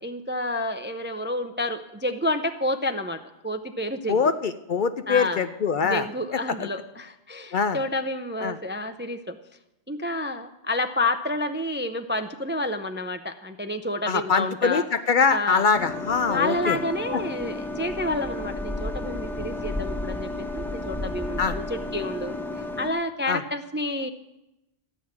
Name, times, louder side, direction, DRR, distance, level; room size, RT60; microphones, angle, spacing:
voice 1, 0.0-4.2 5.1-5.4 5.8-9.4 9.9-14.9 15.3-15.7 16.3-22.3 22.8-24.1, left 1 dB, 15° right, 8 dB, 0.4 m, -29 dB
voice 2, 4.1-6.1 7.5-7.8 8.4-8.6 14.1-16.8 21.4-21.5 23.3-23.4, left 5 dB, 55° left, 11 dB, 0.6 m, -23 dB
sound 1, 15.7-22.9, left 2 dB, ahead, 0.8 m, -32 dB
13.5 x 6.3 x 9.4 m, 0.93 s
omnidirectional pair, 1.1 m